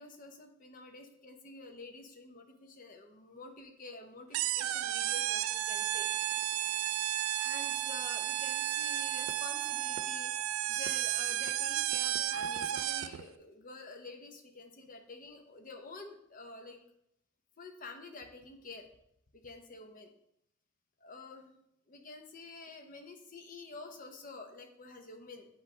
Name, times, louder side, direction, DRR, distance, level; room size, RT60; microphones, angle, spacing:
voice 1, 0.0-6.1 7.3-10.3 10.7-16.8 17.6-18.9 19.3-20.1 21.0-21.6 21.9-25.5, left 3 dB, 45° left, 4 dB, 0.8 m, -49 dB
sound 1, 4.3-13.2, right 12 dB, 85° right, 0.3 m, -33 dB
8.0 x 3.1 x 5.1 m, 0.77 s
head